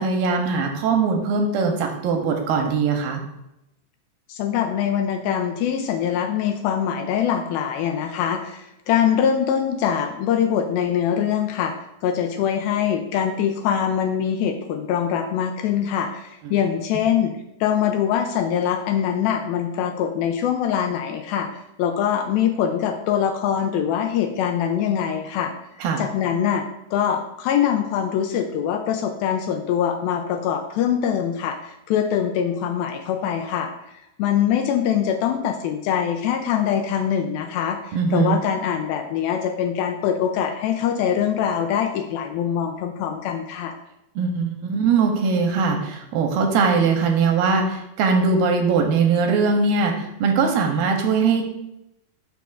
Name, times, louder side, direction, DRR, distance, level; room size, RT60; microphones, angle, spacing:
voice 1, 0.0-3.2 16.4-16.5 25.8-26.0 37.9-38.4 44.2-51.5, right 4 dB, 80° right, 3 dB, 2.3 m, -21 dB
voice 2, 4.3-11.7 12.0-25.5 26.0-33.7 34.2-43.7, left 8 dB, 80° left, 5 dB, 2.2 m, -23 dB
11.5 x 4.6 x 2.4 m, 0.85 s
omnidirectional pair, 4.5 m